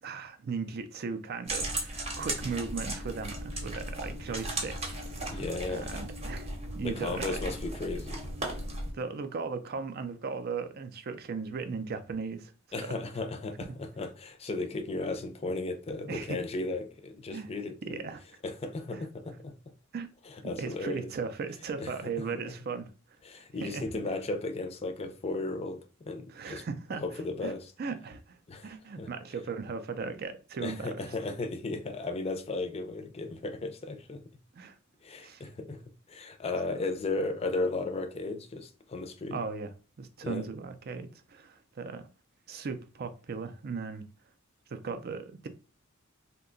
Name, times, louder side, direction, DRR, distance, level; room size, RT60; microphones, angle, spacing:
voice 1, 0.0-5.4 5.7-7.6 8.9-12.9 16.1-16.4 17.3-17.5 17.8-18.2 18.9-19.0 19.9-20.1 20.4-22.9 23.6-23.9 26.3-27.0 27.4-27.5 27.8-28.4 28.6-31.1 34.5-34.8 35.2-35.4 39.3-39.7 40.0-42.1 42.5-44.1 44.7-45.5, right 5 dB, 50° right, 0.4 m, -37 dB
sound 1, 1.5-8.9, right 1 dB, 30° right, 0.8 m, -36 dB
voice 2, 5.3-6.0 6.8-8.2 12.7-18.0 18.4-19.5 20.3-21.1 21.8-22.4 23.2-26.6 27.0-27.7 28.5-29.1 30.6-34.2 35.0-35.8 36.1-39.4 40.2-40.5, left 2 dB, 30° left, 0.4 m, -35 dB
2.7 x 2.2 x 3.8 m
head